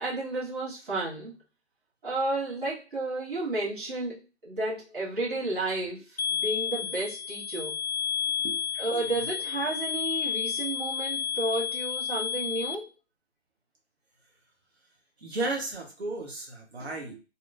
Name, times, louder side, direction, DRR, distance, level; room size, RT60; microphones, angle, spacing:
voice 1, 0.0-1.3 2.0-7.7 8.8-12.9, right 2 dB, 45° right, -7 dB, 1.5 m, -32 dB
sound 1, 6.2-12.7, left 8 dB, 55° left, 0.5 m, -31 dB
voice 2, 8.4-9.3 15.2-17.2, right 2 dB, 65° right, 0 dB, 0.9 m, -35 dB
2.9 x 2.1 x 2.4 m, 0.30 s
figure-of-eight pair, 150°, 35 cm